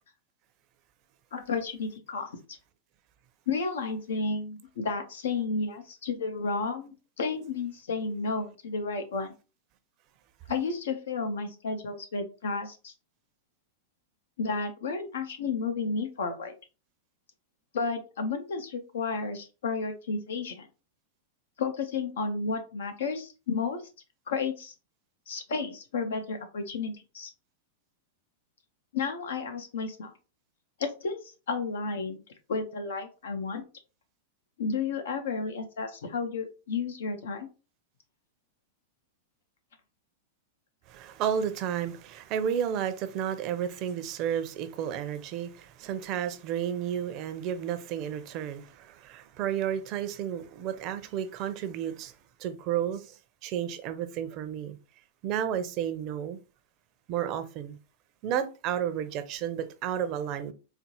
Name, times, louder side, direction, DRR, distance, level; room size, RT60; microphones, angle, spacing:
voice 1, 1.3-2.4 3.5-9.3 10.5-12.9 14.4-16.5 17.7-20.7 21.6-23.8 24.3-24.7 25.3-27.3 28.9-30.1 30.8-32.2 32.5-33.6 34.6-37.5, left 4 dB, 80° left, 0.8 m, -32 dB
voice 2, 40.9-52.1 52.4-54.8 55.2-56.4 57.1-57.8 58.2-60.5, right 9 dB, 40° right, 0.5 m, -32 dB
4.1 x 2.0 x 2.9 m
hypercardioid pair, 125°, 0 cm